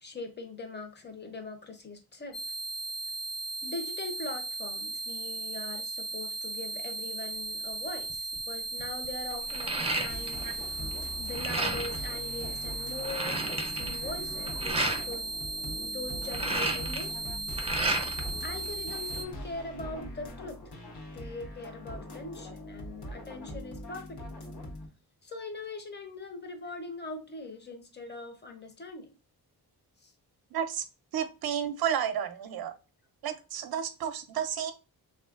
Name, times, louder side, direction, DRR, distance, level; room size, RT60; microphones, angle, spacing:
voice 1, 0.0-2.4 3.6-10.5 11.1-15.4 15.8-17.4 18.4-20.6 21.1-24.5 25.2-29.1 30.0-30.1, left 3 dB, 25° left, 5 dB, 0.7 m, -41 dB
sound 1, 2.3-19.2, right 2 dB, 60° left, 1.4 m, -37 dB
sound 2, 8.1-8.4 8.8-10.6 10.8-12.0 12.5-12.6 12.8-15.0 16.1-18.3 18.7-19.5, right 2 dB, 15° right, 0.5 m, -32 dB
sound 3, 10.1-24.9, left 1 dB, 75° left, 0.9 m, -42 dB
voice 2, 30.5-30.8 31.1-32.7 33.2-34.7, right 9 dB, 65° right, 9 dB, 0.5 m, -31 dB
3.1 x 2.4 x 2.3 m, 0.31 s
cardioid pair, 85°, 39 cm